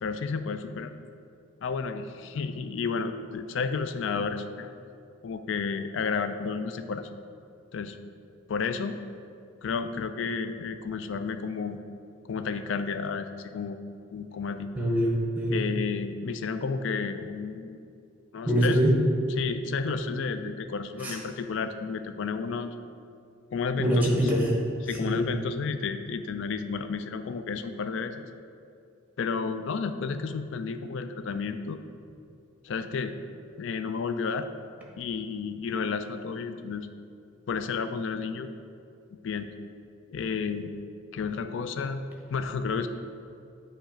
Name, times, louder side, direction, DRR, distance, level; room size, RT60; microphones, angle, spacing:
voice 1, 0.0-0.9 1.6-4.7 5.2-7.1 7.7-8.0 8.5-9.0 9.6-11.8 12.3-13.8 14.1-14.7 15.5-17.8 18.3-18.8 19.4-22.7 23.5-24.3 24.8-28.3 29.2-31.8 32.6-33.2 33.6-34.5 35.0-36.9 37.5-38.5 39.2-39.5 40.1-40.7 41.1-42.0 42.3-42.9, left 5 dB, 60° left, 9 dB, 0.3 m, -31 dB
voice 2, 14.7-15.5 18.4-18.9 21.0-21.2 23.8-24.5 24.9-25.2, equal, 10° right, -2 dB, 0.9 m, -24 dB
7.9 x 3.1 x 4.9 m, 2.5 s
head